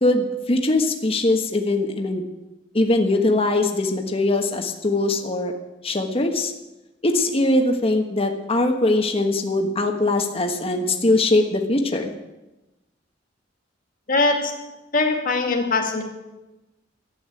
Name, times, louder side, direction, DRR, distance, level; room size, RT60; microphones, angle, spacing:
voice 1, 0.0-2.2 2.7-5.5 5.8-6.5 7.0-12.1, left 2 dB, 30° left, 3 dB, 1.3 m, -21 dB
voice 2, 14.1-14.6 14.9-16.0, left 3 dB, 45° left, 3 dB, 2.3 m, -21 dB
12.5 x 8.5 x 9.7 m, 1.0 s
head